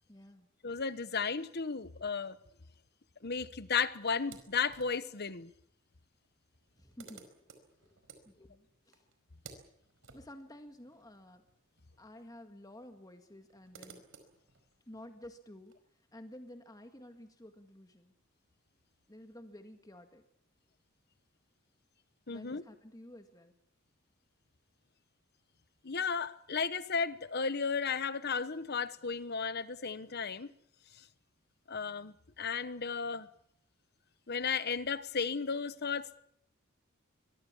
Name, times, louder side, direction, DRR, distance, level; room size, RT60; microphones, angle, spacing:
voice 1, 0.1-0.5 6.8-7.3 7.8-8.0 8.2-9.0 10.1-11.4 12.0-14.0 14.9-15.8 16.1-18.1 19.1-20.2 22.3-23.5, left 1 dB, 20° left, 1.9 m, -52 dB
voice 2, 0.6-2.4 3.2-5.5 22.3-22.6 25.8-30.5 30.9-31.0 31.7-33.3 34.3-36.2, left 5 dB, 50° left, 1.1 m, -34 dB
sound 1, 4.2-5.2 6.2-6.3 6.5-12.1 12.3-12.4 13.3-15.7, right 5 dB, 65° right, 4.7 m, -57 dB
24.0 x 23.0 x 7.2 m
head